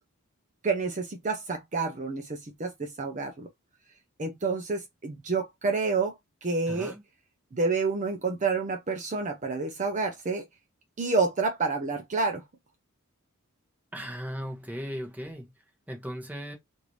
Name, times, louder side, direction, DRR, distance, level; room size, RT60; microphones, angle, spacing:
voice 1, 0.6-3.5 4.2-6.2 6.4-6.9 7.5-10.4 11.0-12.4, right 4 dB, 35° right, 0.6 m, -29 dB
voice 2, 6.7-7.0 13.9-15.5 15.9-16.5, equal, 5° right, 0.8 m, -37 dB
3.2 x 2.6 x 3.0 m
head